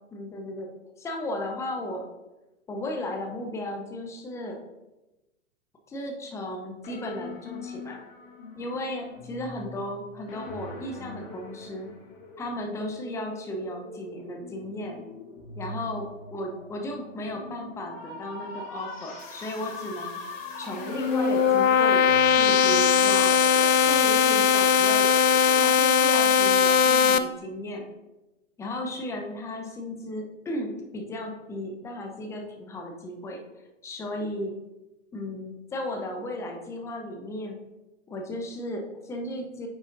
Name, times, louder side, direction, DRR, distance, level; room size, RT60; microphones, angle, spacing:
voice 1, 0.1-0.7 1.0-2.1 2.7-4.6 5.9-8.0 8.6-11.9 12.4-15.0 15.6-16.0 16.3-20.2 20.6-23.4 23.9-25.1 25.6-27.9 28.6-33.4 33.8-34.5 35.1-37.6 38.1-39.7, left 1 dB, 5° left, 2 dB, 0.7 m, -35 dB
sound 1, 6.8-25.6, left 3 dB, 50° left, 1.8 m, -41 dB
sound 2, 20.7-27.2, left 7 dB, 80° left, 0.5 m, -20 dB
9.5 x 4.8 x 2.6 m, 1.0 s
figure-of-eight pair, 110°, 38 cm